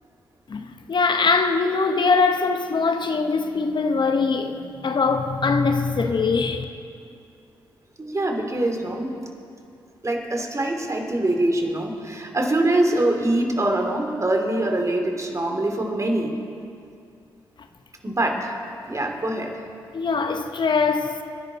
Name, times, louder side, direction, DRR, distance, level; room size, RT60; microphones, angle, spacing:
voice 1, 0.5-6.6 19.9-21.2, left 4 dB, 50° left, 0.9 m, -22 dB
voice 2, 8.0-9.1 10.0-16.4 18.0-18.6 18.9-19.5, right 1 dB, 30° right, 2.9 m, -24 dB
26.0 x 11.0 x 4.1 m
supercardioid pair, 40°, 10 cm